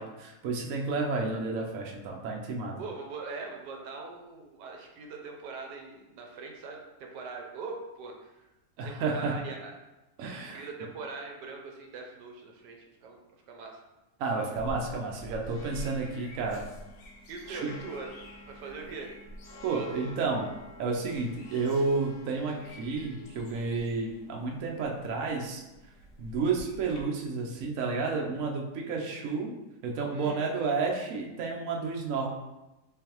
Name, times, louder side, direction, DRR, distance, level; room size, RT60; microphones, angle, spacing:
voice 1, 0.0-2.8 8.8-9.4 10.2-10.6 14.2-16.6 17.5-17.7 19.6-20.5 20.8-25.6 26.2-29.5 29.8-32.3, right 4 dB, 65° right, 0 dB, 0.9 m, -31 dB
voice 2, 2.8-8.5 8.8-9.8 10.4-13.8 17.3-18.1 18.5-19.1 19.7-20.1 30.1-30.4, right 4 dB, 80° right, 1 dB, 1.3 m, -42 dB
sound 1, 14.5-27.0, equal, 60° left, 0.9 m, -47 dB
3.8 x 3.3 x 2.9 m, 1.0 s
omnidirectional pair, 1.8 m